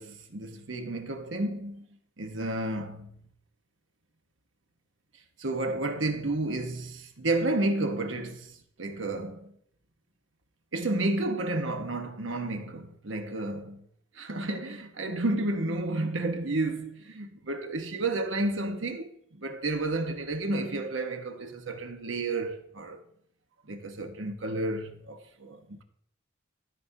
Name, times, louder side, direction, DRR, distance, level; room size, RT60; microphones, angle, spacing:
voice 1, 0.0-1.8 2.2-3.1 5.4-9.5 10.7-13.8 14.1-23.0 23.7-25.8, right 2 dB, 70° right, 1.1 m, -31 dB
13.5 x 6.0 x 2.7 m
head